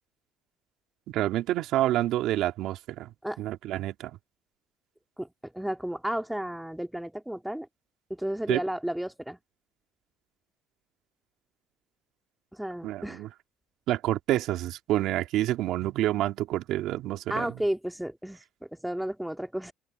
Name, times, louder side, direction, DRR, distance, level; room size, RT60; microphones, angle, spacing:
voice 1, 1.1-3.1 3.4-4.1 8.5-8.6 12.8-13.3 13.9-17.4, right 14 dB, 70° right, 2.9 m, -28 dB
voice 2, 5.2-7.7 8.1-9.4 12.5-13.2 17.3-19.7, right 1 dB, 5° right, 2.5 m, -33 dB
open air
supercardioid pair, 75°, 0 cm